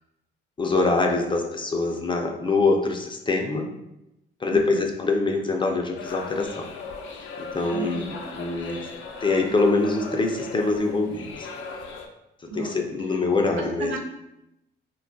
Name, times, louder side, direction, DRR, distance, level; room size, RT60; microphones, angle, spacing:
voice 1, 0.6-3.7 4.4-6.7 7.4-8.8 9.2-11.5 12.5-13.9, left 3 dB, 25° left, 2 dB, 0.4 m, -24 dB
sound 1, 6.0-12.1, left 4 dB, 85° left, 0.4 m, -38 dB
voice 2, 7.7-8.0 12.5-12.8 13.6-14.0, right 3 dB, 80° right, 0 dB, 0.6 m, -33 dB
2.2 x 2.1 x 3.8 m, 0.87 s
cardioid pair, 90°, 20 cm